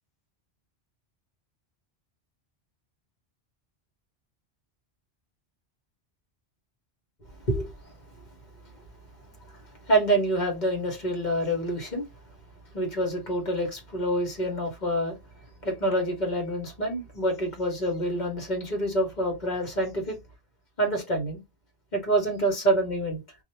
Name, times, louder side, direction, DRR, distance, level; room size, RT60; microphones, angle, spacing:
voice 1, 9.9-12.0 12.7-15.2 15.6-20.2 20.8-21.4 21.9-23.2, right 1 dB, 45° left, 1.0 m, -27 dB
2.5 x 2.0 x 3.0 m
omnidirectional pair, 1.1 m